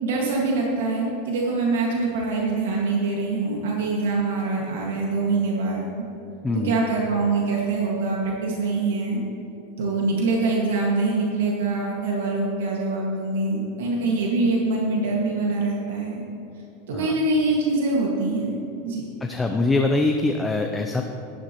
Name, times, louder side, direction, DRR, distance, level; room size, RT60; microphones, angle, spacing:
voice 1, 0.0-5.9 6.6-9.2 9.8-16.2 16.9-18.6 18.8-19.0, right 3 dB, 85° right, -2 dB, 1.8 m, -24 dB
voice 2, 6.4-6.8 16.9-17.1 19.2-21.0, left 2 dB, 10° left, 3 dB, 0.5 m, -23 dB
12.5 x 11.5 x 3.0 m, 2.9 s
supercardioid pair, 145°, 0 cm